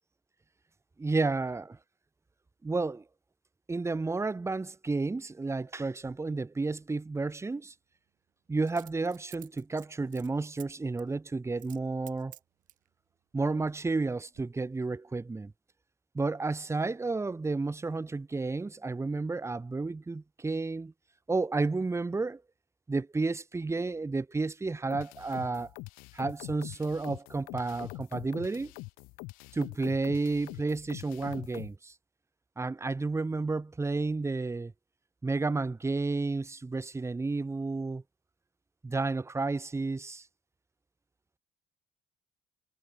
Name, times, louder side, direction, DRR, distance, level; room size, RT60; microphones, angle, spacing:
voice 1, 1.0-1.8 2.6-3.0 3.7-7.7 8.5-12.3 13.3-15.5 16.1-20.9 21.3-22.4 22.9-25.7 26.1-28.7 29.5-31.9 32.6-34.7 35.2-38.0 38.8-40.3, right 3 dB, 20° right, 2.8 m, -31 dB
Coin (dropping), 6.0-6.2 8.7-10.7 11.0-11.2 11.6-11.8 12.1-12.9 13.5-14.0 14.3-14.4, right 14 dB, 70° right, 7.4 m, -52 dB
sound 1, 24.9-31.7, left 26 dB, 90° left, 5.0 m, -44 dB
supercardioid pair, 85°, 14 cm